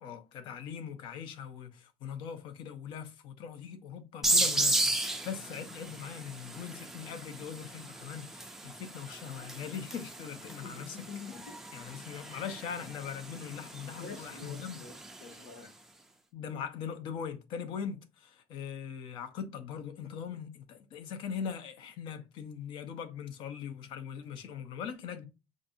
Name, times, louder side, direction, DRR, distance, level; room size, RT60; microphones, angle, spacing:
voice 1, 0.0-11.0 11.7-14.8 16.3-25.3, left 7 dB, 60° left, 0.6 m, -41 dB
sound 1, 4.2-15.6, right 2 dB, 5° right, 0.4 m, -35 dB
voice 2, 10.6-11.6 14.0-15.7, left 5 dB, 90° left, 1.3 m, -46 dB
5.2 x 2.5 x 2.5 m
cardioid pair, 175°, 10 cm